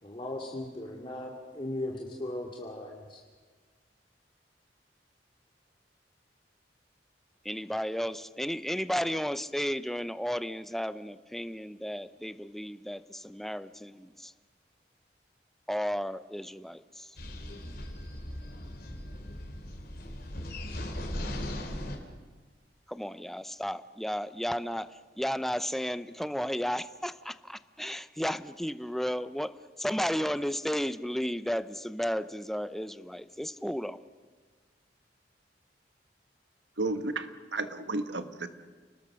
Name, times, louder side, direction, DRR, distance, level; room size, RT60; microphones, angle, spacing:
voice 1, 0.0-3.2, left 1 dB, 30° left, -1 dB, 2.4 m, -37 dB
voice 2, 7.4-14.3 15.7-17.1 22.9-24.9 25.2-29.5 29.8-34.0, equal, ahead, 13 dB, 0.6 m, -33 dB
sound 1, 17.2-22.0, left 1 dB, 60° left, 3.5 m, -38 dB
voice 3, 36.8-38.5, right 2 dB, 80° right, 9 dB, 1.5 m, -33 dB
29.5 x 20.0 x 6.4 m, 1.4 s
head